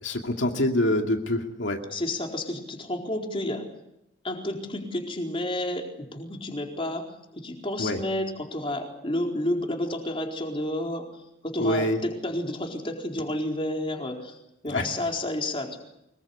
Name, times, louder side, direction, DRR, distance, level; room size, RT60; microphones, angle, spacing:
voice 1, 0.0-1.8 7.8-8.0 11.6-12.0 14.7-14.9, left 1 dB, 80° left, 3 dB, 2.4 m, -25 dB
voice 2, 1.9-3.7 4.2-11.1 11.4-14.4 14.6-15.8, left 1 dB, 30° left, 1 dB, 4.4 m, -31 dB
25.5 x 22.0 x 8.4 m, 0.83 s
head